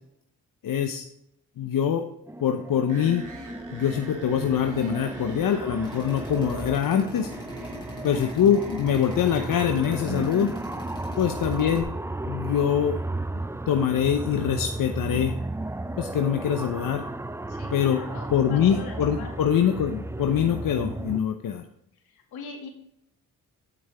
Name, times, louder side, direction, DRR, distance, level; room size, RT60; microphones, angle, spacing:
voice 1, 0.6-1.0 1.6-2.1 2.4-3.3 3.7-7.3 8.0-10.5 11.2-11.9 12.2-13.0 13.7-15.4 16.0-17.0 17.7-18.0 18.3-21.6, left 8 dB, 60° left, 6 dB, 0.9 m, -24 dB
sound 1, 2.3-21.2, right 2 dB, 5° right, 0.5 m, -34 dB
sound 2, 2.9-9.5, right 2 dB, 50° right, 2.7 m, -44 dB
Drill, 5.8-11.8, left 1 dB, 10° left, 3.4 m, -42 dB
voice 2, 8.1-8.4 11.2-11.3 17.5-19.3 21.9-22.7, left 5 dB, 75° left, 1 dB, 2.3 m, -43 dB
9.1 x 8.5 x 3.5 m, 0.74 s
supercardioid pair, 45°, 38 cm